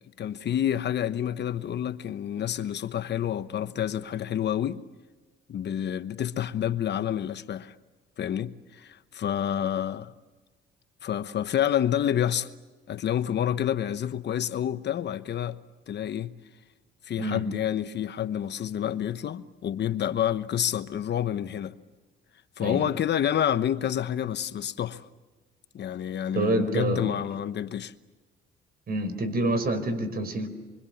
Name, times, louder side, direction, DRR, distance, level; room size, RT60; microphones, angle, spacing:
voice 1, 0.0-4.8 5.5-7.7 8.2-10.1 11.0-12.5 12.9-15.6 15.9-16.3 17.1-21.7 22.6-25.0 25.7-27.9, left 10 dB, 60° left, 1.1 m, -28 dB
voice 2, 26.3-27.1 28.9-30.5, right 2 dB, 50° right, 5.1 m, -27 dB
26.5 x 24.5 x 7.2 m
cardioid pair, 90°, 20 cm